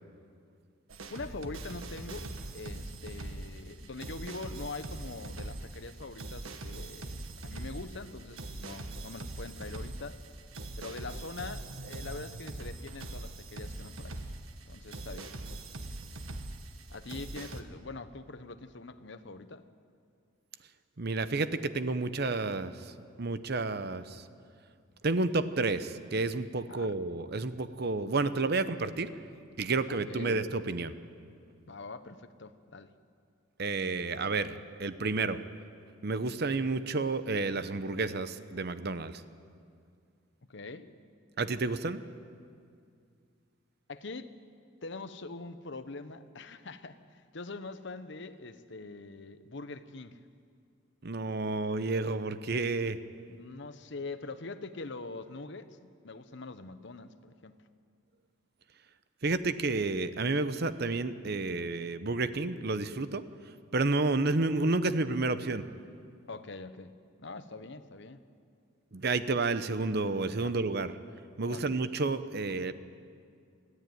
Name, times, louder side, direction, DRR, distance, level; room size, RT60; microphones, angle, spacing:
sound 1, 0.9-17.6, right 2 dB, 85° right, 1.5 m, -42 dB
voice 1, 1.1-10.2 10.8-14.3 14.7-15.3 16.9-19.6 26.7-26.9 29.9-30.4 31.7-32.9 40.5-40.9 43.9-44.3 44.8-50.2 53.3-57.6 66.3-68.2 70.4-70.5 71.5-71.7, left 3 dB, 60° left, 10 dB, 1.0 m, -43 dB
voice 2, 21.0-24.3 25.0-29.1 29.6-31.0 33.6-35.5 36.0-39.2 41.4-42.0 51.0-53.0 59.2-63.2 63.7-65.7 68.9-70.9 71.4-72.7, right 3 dB, 50° right, 12 dB, 0.8 m, -30 dB
23.5 x 14.5 x 9.4 m, 2.3 s
head